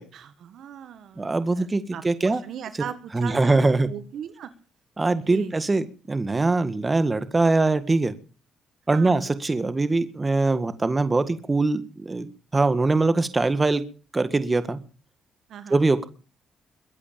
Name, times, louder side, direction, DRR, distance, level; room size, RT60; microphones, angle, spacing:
voice 1, 0.1-4.5 5.3-5.5 8.9-9.2 15.5-15.8, right 9 dB, 70° right, 12 dB, 1.6 m, -39 dB
voice 2, 1.2-2.4 3.1-3.9 5.0-8.1 8.9-13.8 14.1-14.8 15.7-16.1, right 3 dB, 25° right, 12 dB, 1.8 m, -22 dB
22.5 x 8.6 x 6.9 m, 0.39 s
cardioid pair, 90°, 0 cm